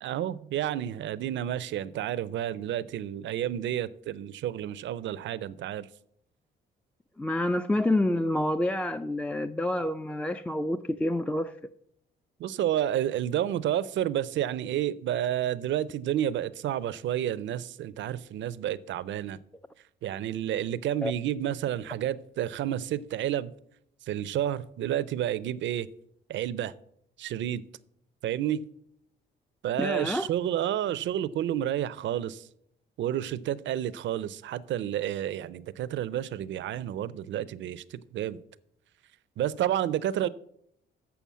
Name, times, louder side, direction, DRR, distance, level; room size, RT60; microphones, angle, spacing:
voice 1, 0.0-5.9 12.4-19.4 20.0-23.5 24.1-25.9 26.3-26.7 27.2-27.6 28.2-28.6 29.6-32.5 33.0-38.4 39.4-40.3, right 11 dB, 70° right, 0.5 m, -30 dB
voice 2, 7.2-11.5 21.0-21.1 29.8-30.3, left 1 dB, 5° left, 0.3 m, -28 dB
7.0 x 6.7 x 7.3 m
cardioid pair, 90°, 20 cm